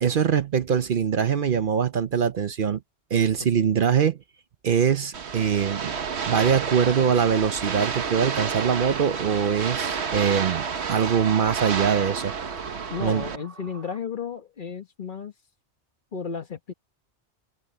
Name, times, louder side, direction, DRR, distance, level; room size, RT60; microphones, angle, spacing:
voice 1, 0.0-2.8 3.1-4.2 4.6-6.0 6.3-12.3 13.0-13.2, right 7 dB, 55° right, 0.8 m, -23 dB
sound 1, 5.1-13.4, right 6 dB, 70° right, 1.4 m, -30 dB
sound 2, 7.6-14.0, right 3 dB, 85° right, 3.5 m, -46 dB
voice 2, 12.9-15.3 16.1-16.7, left 6 dB, 50° left, 1.3 m, -33 dB
omnidirectional pair, 1.1 m